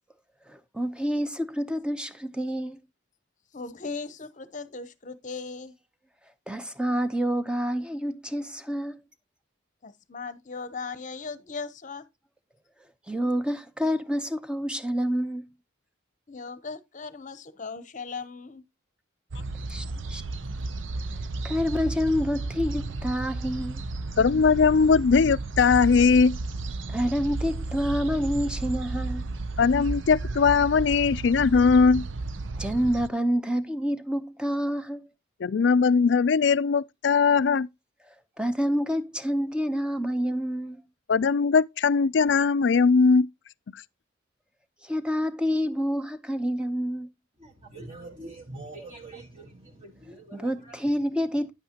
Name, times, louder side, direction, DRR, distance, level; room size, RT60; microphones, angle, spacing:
voice 1, 0.5-2.8 6.5-9.0 13.1-15.5 19.7-20.2 21.4-23.8 26.9-29.2 32.6-35.0 38.4-40.8 44.8-47.1 50.3-51.5, equal, 5° right, 0.8 m, -28 dB
voice 2, 3.5-5.7 9.8-12.1 16.3-18.6, left 4 dB, 40° left, 0.8 m, -38 dB
sound 1, 19.3-33.1, right 3 dB, 70° right, 0.6 m, -33 dB
voice 3, 24.2-26.4 29.6-32.1 35.4-37.7 41.1-43.3, left 5 dB, 60° left, 0.4 m, -20 dB
voice 4, 47.4-50.8 51.1-51.5, right 2 dB, 30° right, 1.9 m, -44 dB
10.0 x 8.4 x 2.9 m
head